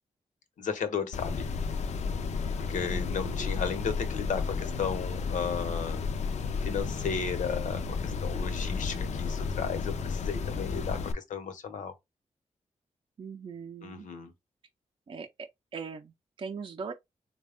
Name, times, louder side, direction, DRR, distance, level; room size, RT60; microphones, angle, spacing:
voice 1, 0.6-1.5 2.6-6.1 6.6-11.9 13.8-14.3, left 6 dB, 85° left, 0.9 m, -34 dB
sound 1, 1.1-11.1, left 5 dB, 65° left, 0.4 m, -32 dB
voice 2, 2.8-3.6 13.2-14.1 15.1-16.9, right 5 dB, 40° right, 0.4 m, -41 dB
4.1 x 2.2 x 3.5 m
wide cardioid pair, 155°, 13 cm